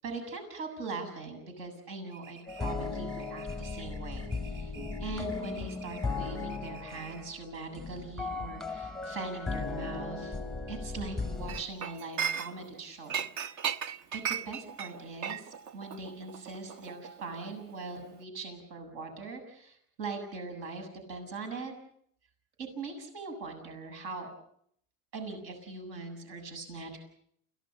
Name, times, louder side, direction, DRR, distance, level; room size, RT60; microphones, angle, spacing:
voice 1, 0.0-4.7 5.0-10.4 10.7-13.2 14.1-21.7 22.6-24.3 25.1-27.0, right 3 dB, 65° right, 4 dB, 7.5 m, -41 dB
sound 1, 2.1-7.4, right 4 dB, 85° right, 4.9 m, -53 dB
sound 2, 2.5-11.6, left 4 dB, ahead, 0.9 m, -37 dB
Chink clink, 11.5-12.8 13.1-17.7 18.0-18.2, right 7 dB, 40° right, 1.0 m, -36 dB
29.5 x 17.5 x 6.9 m, 0.67 s
supercardioid pair, 120°, 42 cm